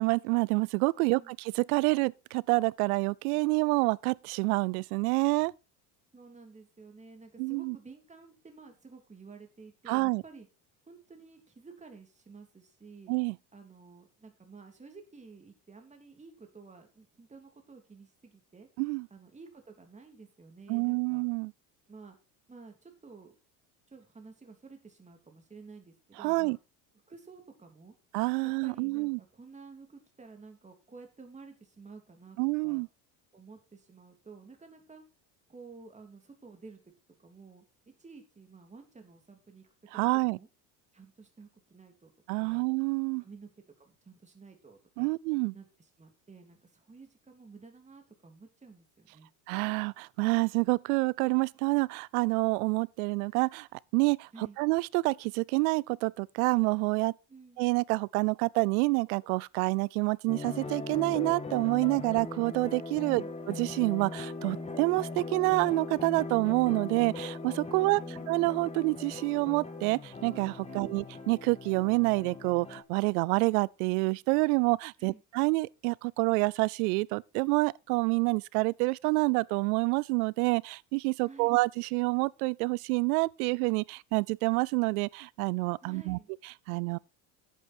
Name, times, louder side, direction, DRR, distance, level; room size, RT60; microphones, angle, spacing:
voice 1, 0.0-5.5 7.4-7.8 9.9-10.2 13.1-13.4 18.8-19.1 20.7-21.5 26.2-26.6 28.1-29.2 32.4-32.9 39.9-40.4 42.3-43.2 45.0-45.5 49.5-54.3 54.6-57.1 57.6-63.2 63.5-68.0 68.3-86.2 86.7-87.0, right 26 dB, 85° right, 0.6 m, -28 dB
voice 2, 1.0-1.3 6.1-10.5 10.9-13.1 13.5-18.7 19.1-21.2 21.9-22.2 22.5-23.3 23.9-26.6 27.1-27.9 28.4-32.8 33.3-35.0 35.5-36.9 37.2-37.6 38.0-40.5 40.9-42.1 42.4-42.7 43.2-43.5 43.8-45.1 45.5-49.3 54.3-54.6 57.3-57.6 63.0-63.3 67.7-68.3 70.7-70.9 75.0-75.2 81.2-81.5 85.8-86.3, right 4 dB, 15° right, 3.0 m, -52 dB
sound 1, 60.3-72.8, left 3 dB, 15° left, 1.9 m, -40 dB
11.0 x 8.4 x 4.3 m
supercardioid pair, 120°, 43 cm